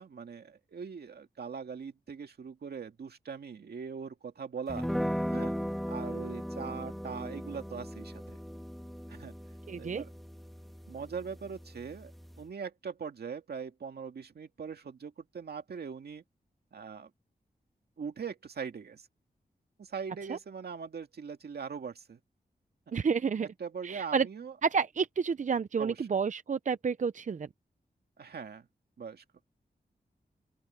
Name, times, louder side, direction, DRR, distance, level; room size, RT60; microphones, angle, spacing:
voice 1, 0.0-4.9 5.3-5.5 5.9-8.4 9.1-9.3 9.8-10.1 10.9-12.1 12.4-16.2 16.7-17.1 18.0-19.1 19.8-22.2 23.4-24.6 25.8-26.1 28.2-28.7 29.0-29.2, right 6 dB, 80° right, 2.0 m, -41 dB
sound 1, 4.7-12.5, equal, ahead, 1.7 m, -38 dB
voice 2, 9.7-10.0 20.3-20.4 22.9-23.5 23.8-24.3 24.6-27.5, right 6 dB, 50° right, 0.6 m, -30 dB
open air
wide cardioid pair, 100°, 17 cm